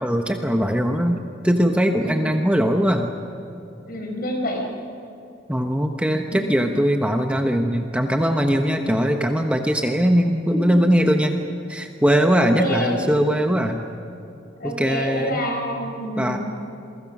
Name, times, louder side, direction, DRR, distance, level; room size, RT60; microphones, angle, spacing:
voice 1, 0.0-3.1 5.5-11.3 11.7-13.8 14.6-15.4 16.2-16.4, equal, 5° right, 3 dB, 1.1 m, -20 dB
voice 2, 3.8-4.7 6.3-6.5 10.5-10.8 11.0-11.1 12.4-13.2 14.6-16.4, equal, 50° left, 2 dB, 5.1 m, -27 dB
28.5 x 23.0 x 6.1 m, 2.8 s
head